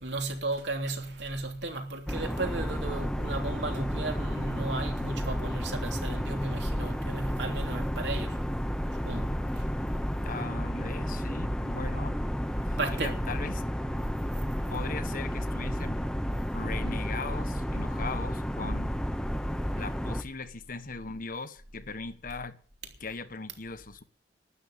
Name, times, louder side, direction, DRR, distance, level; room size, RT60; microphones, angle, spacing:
voice 1, 0.0-8.4 9.0-9.6 12.8-13.2 16.4-16.5, right 2 dB, 75° right, 3.2 m, -34 dB
sound 1, 2.1-20.2, equal, 5° left, 1.0 m, -32 dB
voice 2, 10.2-12.2 12.7-13.6 14.7-16.0 16.5-18.9 19.7-22.6 23.0-24.0, left 4 dB, 50° left, 1.3 m, -39 dB
12.5 x 10.0 x 8.6 m
head